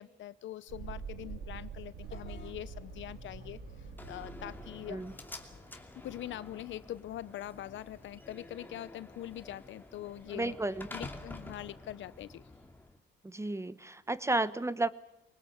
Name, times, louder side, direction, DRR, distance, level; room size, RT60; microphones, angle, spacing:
voice 1, 0.0-3.6 4.0-5.0 6.0-10.6 10.9-12.4, left 13 dB, 70° left, 17 dB, 0.8 m, -43 dB
Thunderstorm, 0.7-8.1, right 6 dB, 85° right, 3.4 m, -47 dB
Vehicle horn car horn honking / Bus, 2.0-8.1, left 4 dB, 45° left, 3.8 m, -55 dB
Slam, 4.0-13.0, left 2 dB, 10° left, 2.6 m, -49 dB
voice 2, 10.3-10.9 13.2-14.9, right 2 dB, 15° right, 16 dB, 1.0 m, -32 dB
22.0 x 19.5 x 8.4 m, 0.84 s
cardioid pair, 90°, 20 cm